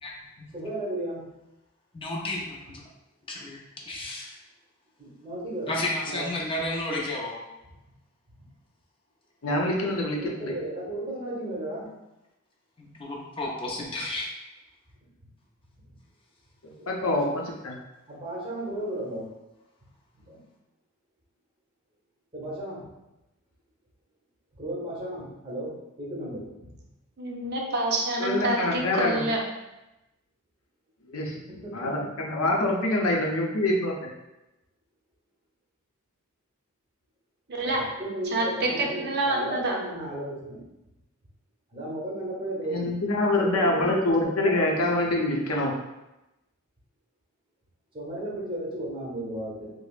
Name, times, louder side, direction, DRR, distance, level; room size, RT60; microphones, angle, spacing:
voice 1, 0.5-1.3 5.0-5.8 6.1-6.3 9.8-9.9 10.2-11.9 15.9-16.0 16.8-17.3 18.1-19.3 20.1-20.4 22.3-22.9 24.5-26.5 31.3-32.1 37.7-40.6 41.7-42.9 43.4-44.9 47.9-49.7, right 1 dB, 25° right, -5 dB, 1.0 m, -35 dB
voice 2, 1.9-2.9 3.3-3.6 3.9-4.4 5.7-7.4 12.8-14.3, left 1 dB, 25° left, -2 dB, 0.4 m, -32 dB
voice 3, 9.4-10.5 16.9-17.3 17.6-17.8 28.2-29.2 31.1-31.3 31.7-34.1 42.7-45.7, left 2 dB, 85° left, 0 dB, 0.6 m, -25 dB
voice 4, 27.2-29.4 37.6-37.8 38.3-39.8, right 2 dB, 50° right, 0 dB, 0.6 m, -27 dB
4.8 x 2.0 x 2.4 m, 0.96 s
head